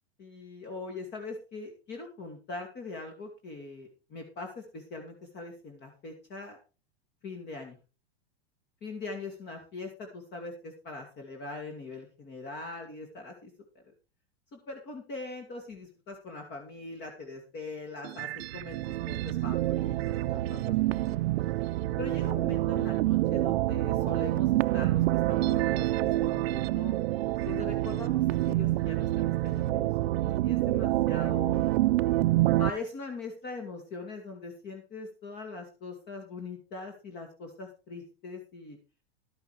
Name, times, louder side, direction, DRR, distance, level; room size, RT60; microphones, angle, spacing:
voice 1, 0.2-6.6 7.2-7.8 8.8-13.8 14.5-21.2 22.0-27.0 27.5-30.1 30.4-31.6 32.6-38.8, left 3 dB, 35° left, 4 dB, 2.4 m, -42 dB
sound 1, 18.0-32.7, right 16 dB, 75° right, 0.6 m, -27 dB
12.5 x 7.9 x 4.7 m, 0.33 s
supercardioid pair, 135°, 31 cm